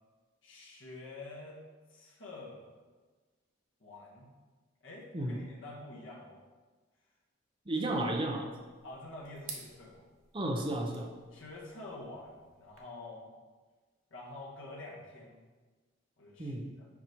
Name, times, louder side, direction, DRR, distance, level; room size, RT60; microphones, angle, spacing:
voice 1, 0.4-1.6 1.9-2.7 3.8-4.3 4.8-6.4 7.7-8.0 8.8-10.1 11.3-13.3 14.1-15.5 16.2-16.9, left 2 dB, 70° left, -4 dB, 1.5 m, -48 dB
voice 2, 7.7-8.5 10.3-11.1 16.4-16.7, right 1 dB, 25° right, 1 dB, 0.7 m, -33 dB
sound 1, 7.8-12.8, right 5 dB, 80° right, 1.1 m, -53 dB
5.9 x 4.9 x 4.6 m, 1.4 s
head